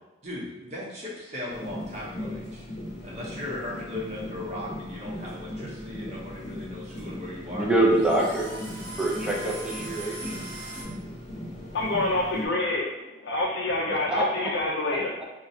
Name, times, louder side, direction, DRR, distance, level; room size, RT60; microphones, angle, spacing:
voice 1, 0.2-2.7 3.0-7.7, left 1 dB, 35° right, -6 dB, 0.9 m, -37 dB
sound 1, 1.5-12.5, left 1 dB, 35° left, 0.9 m, -38 dB
sound 2, 5.9-10.8, right 2 dB, 85° right, 0.7 m, -41 dB
voice 2, 7.5-8.5 9.0-10.3 13.9-14.2, right 2 dB, 5° right, -3 dB, 0.5 m, -25 dB
voice 3, 11.4-15.2, left 2 dB, 75° left, -3 dB, 0.4 m, -27 dB
2.6 x 2.3 x 4.1 m, 1.0 s
head